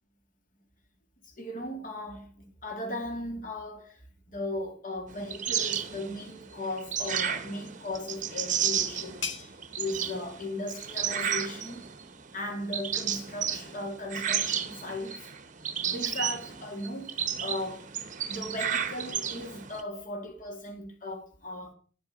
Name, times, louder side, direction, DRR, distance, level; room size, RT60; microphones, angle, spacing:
voice 1, 1.2-9.3 9.8-11.9 12.3-15.3 15.8-17.9 18.2-21.7, left 1 dB, 40° left, 2.6 m, -37 dB
sound 1, 5.1-19.8, right 8 dB, 40° right, 0.9 m, -33 dB
sound 2, 7.9-13.3, left 5 dB, 70° left, 1.9 m, -45 dB
10.5 x 7.9 x 6.2 m
head